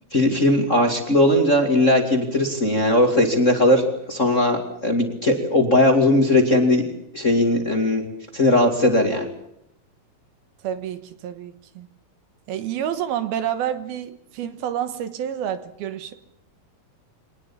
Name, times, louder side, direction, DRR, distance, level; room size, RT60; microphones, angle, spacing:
voice 1, 0.1-6.9 7.1-8.0 8.3-9.3, left 1 dB, 25° left, 5 dB, 2.1 m, -18 dB
voice 2, 10.6-11.9 12.5-16.1, right 10 dB, 75° right, 11 dB, 3.1 m, -29 dB
24.5 x 19.5 x 7.3 m, 0.76 s
omnidirectional pair, 4.5 m